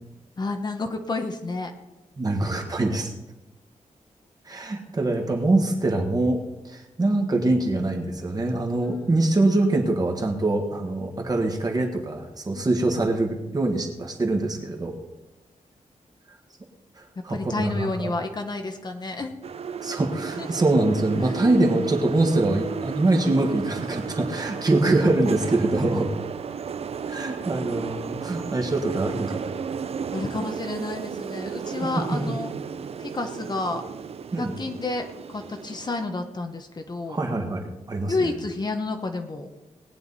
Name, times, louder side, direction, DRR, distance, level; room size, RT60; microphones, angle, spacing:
voice 1, 0.4-1.7 8.8-9.1 12.5-12.6 17.3-19.3 20.4-20.5 21.2-21.3 30.1-32.5 33.0-33.8 34.4-37.2 38.1-39.5, left 3 dB, 30° left, 5 dB, 1.0 m, -30 dB
voice 2, 2.2-3.1 4.4-15.0 17.0-18.1 19.8-26.1 27.1-29.7 32.1-32.4 34.3-34.5 37.1-38.3, right 2 dB, 30° right, 2 dB, 1.6 m, -24 dB
sound 1, 19.4-36.0, right 6 dB, 50° right, 0.5 m, -34 dB
19.0 x 9.3 x 4.1 m, 1.0 s
wide cardioid pair, 180°, 13 cm